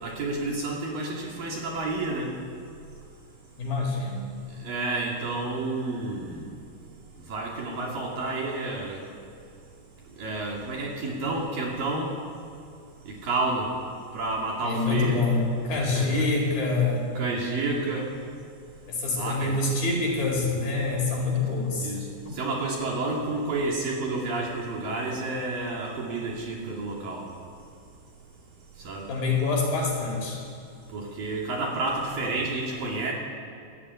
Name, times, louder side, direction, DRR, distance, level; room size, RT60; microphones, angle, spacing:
voice 1, 0.0-2.3 4.6-6.5 7.3-9.0 10.2-12.1 13.2-13.7 14.1-15.2 15.9-16.3 17.2-18.1 19.2-19.6 21.8-22.0 22.4-27.3 28.8-29.0 30.9-33.1, right 3 dB, 50° right, -1 dB, 3.9 m, -30 dB
voice 2, 3.6-4.3 14.6-17.0 18.9-21.9 22.3-22.4 29.1-30.4, left 3 dB, 50° left, 0 dB, 6.1 m, -26 dB
26.5 x 16.5 x 9.6 m, 2.3 s
omnidirectional pair, 5.6 m